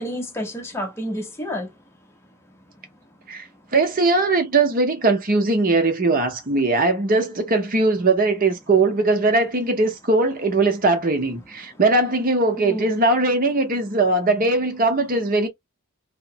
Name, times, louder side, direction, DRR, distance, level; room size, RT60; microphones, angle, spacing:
voice 1, 0.0-1.7 12.6-12.9, equal, 10° left, 0.7 m, -29 dB
voice 2, 3.7-15.5, right 2 dB, 40° right, 0.8 m, -20 dB
3.0 x 2.1 x 2.7 m
head